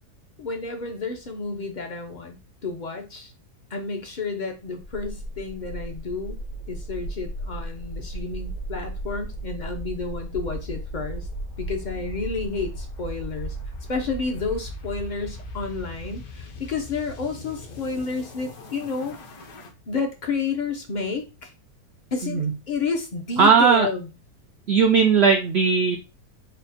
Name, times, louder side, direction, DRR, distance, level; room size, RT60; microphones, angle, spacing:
voice 1, 0.4-2.4 2.6-3.3 3.7-6.4 6.7-11.3 11.6-13.6 13.9-19.2 19.9-21.5 22.1-24.1, left 4 dB, 55° left, 4 dB, 0.5 m, -30 dB
sound 1, 4.8-19.7, equal, 70° left, 1.3 m, -36 dB
voice 2, 22.2-22.5 23.4-23.9 24.7-26.0, right 6 dB, 80° right, 4 dB, 0.5 m, -18 dB
4.2 x 2.1 x 4.0 m, 0.28 s
omnidirectional pair, 1.6 m